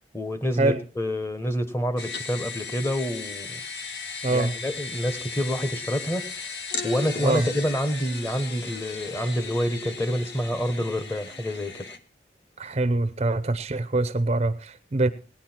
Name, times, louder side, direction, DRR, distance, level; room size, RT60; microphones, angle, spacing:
voice 1, 0.1-3.6 4.3-6.4 6.8-11.9, equal, 15° left, 1.1 m, -28 dB
sound 1, 2.0-12.0, left 5 dB, 70° left, 1.2 m, -36 dB
voice 2, 4.2-4.5 7.2-7.5 12.6-15.1, right 2 dB, 35° right, 0.6 m, -24 dB
18.0 x 10.0 x 4.4 m
head